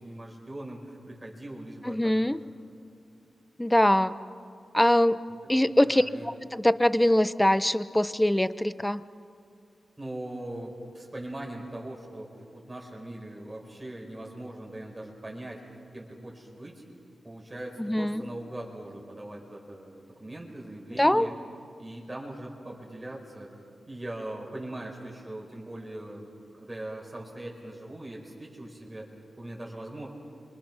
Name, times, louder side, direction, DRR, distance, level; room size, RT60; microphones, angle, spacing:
voice 1, 0.0-2.4 5.6-6.3 10.0-15.6 15.9-16.8 17.2-21.3 21.8-23.5 23.9-30.1, right 1 dB, 25° right, -2 dB, 4.6 m, -41 dB
voice 2, 1.8-2.4 3.6-4.1 4.7-5.2 5.5-9.0 17.8-18.2 21.0-21.3, left 1 dB, 10° left, 15 dB, 0.7 m, -23 dB
28.5 x 25.0 x 6.1 m, 2.3 s
cardioid pair, 70°, 0 cm